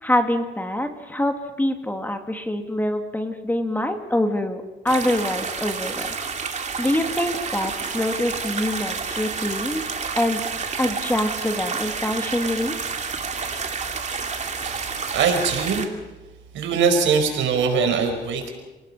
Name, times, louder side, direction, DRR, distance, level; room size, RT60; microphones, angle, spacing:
voice 1, 0.0-6.1 6.8-10.4 10.8-12.8, left 1 dB, 10° left, 6 dB, 2.5 m, -25 dB
sound 1, 4.9-15.9, right 5 dB, 40° right, 2.8 m, -29 dB
voice 2, 14.6-15.9 16.5-18.5, right 5 dB, 90° right, 4 dB, 5.2 m, -22 dB
29.5 x 19.5 x 5.7 m, 1.1 s
cardioid pair, 105°, 19 cm